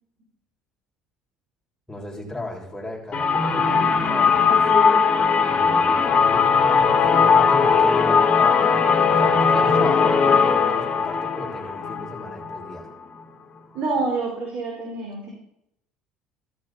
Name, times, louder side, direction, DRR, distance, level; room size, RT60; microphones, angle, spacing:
voice 1, 1.9-4.7 5.5-8.8 9.1-12.9, left 2 dB, 10° left, -2 dB, 6.7 m, -35 dB
sound 1, 3.1-12.8, left 5 dB, 35° left, 3.1 m, -19 dB
voice 2, 13.7-15.3, right 3 dB, 55° right, 0 dB, 4.5 m, -27 dB
15.5 x 13.0 x 4.3 m, 0.76 s
hypercardioid pair, 65°, 4 cm